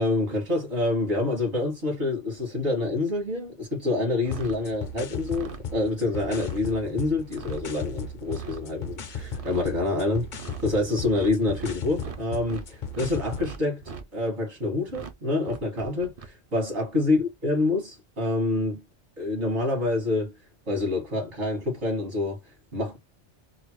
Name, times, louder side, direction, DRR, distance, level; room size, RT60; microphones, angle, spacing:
voice 1, 0.0-10.3 10.6-18.8 19.2-20.3 20.7-23.0, left 2 dB, 75° right, 2.0 m, -27 dB
sound 1, 4.2-13.5, left 4 dB, 55° left, 0.6 m, -37 dB
sound 2, 4.2-4.6 5.2-5.6 6.2-6.6 7.2-7.6 8.2-8.6 9.2-9.7 10.2-10.7 11.1-12.6 12.9-14.0 14.9-15.1 15.4-16.3, right 5 dB, 45° right, 0.5 m, -41 dB
3.7 x 2.0 x 3.0 m
omnidirectional pair, 1.2 m